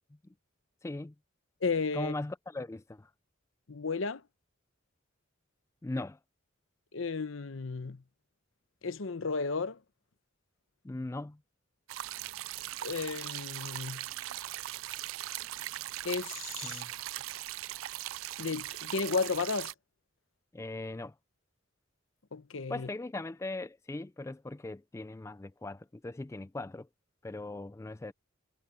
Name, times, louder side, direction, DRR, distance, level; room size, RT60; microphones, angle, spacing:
voice 1, 0.8-1.1 1.9-3.1 5.8-6.2 10.8-11.4 16.6-16.9 20.5-21.1 22.7-26.9 27.2-28.1, left 2 dB, 15° left, 0.3 m, -39 dB
voice 2, 1.6-2.1 3.7-4.2 6.9-8.0 8.8-9.8 12.8-14.0 16.0-16.8 18.4-19.7 22.3-22.9, left 4 dB, 75° left, 0.9 m, -33 dB
sound 1, 11.9-19.7, right 15 dB, 85° right, 0.3 m, -40 dB
head